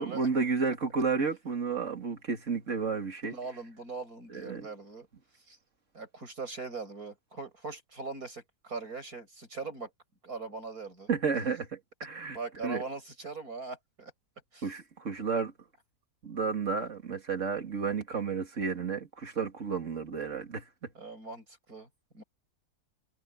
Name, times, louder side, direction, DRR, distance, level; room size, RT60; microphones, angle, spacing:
voice 1, 0.0-3.4 4.3-4.7 11.1-12.4 12.6-12.8 14.6-15.5 16.2-20.6, right 5 dB, 50° right, 2.8 m, -32 dB
voice 2, 3.2-5.1 5.5-5.6 5.9-9.9 10.2-11.1 12.3-14.1 14.5-14.7 20.9-21.9 22.1-22.2, right 4 dB, 70° right, 7.7 m, -41 dB
omnidirectional pair, 1.6 m